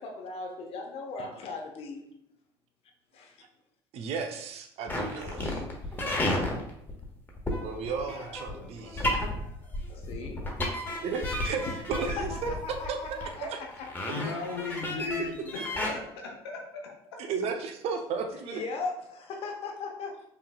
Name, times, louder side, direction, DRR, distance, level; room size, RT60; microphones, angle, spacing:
voice 1, 0.0-2.1 3.1-3.4 5.2-5.7 8.1-10.5 10.9-11.1 12.2-14.1 18.4-20.2, left 3 dB, 50° left, 2 dB, 1.0 m, -39 dB
voice 2, 3.9-5.6 7.6-9.1 11.0-12.5 12.9-13.6 17.2-18.6, right 5 dB, 55° right, 4 dB, 0.7 m, -34 dB
sound 1, 4.9-15.9, left 1 dB, 15° left, 1.3 m, -32 dB
voice 3, 14.1-17.2, left 4 dB, 80° left, 1 dB, 0.8 m, -37 dB
5.4 x 3.2 x 2.3 m, 0.74 s
hypercardioid pair, 60°, 13 cm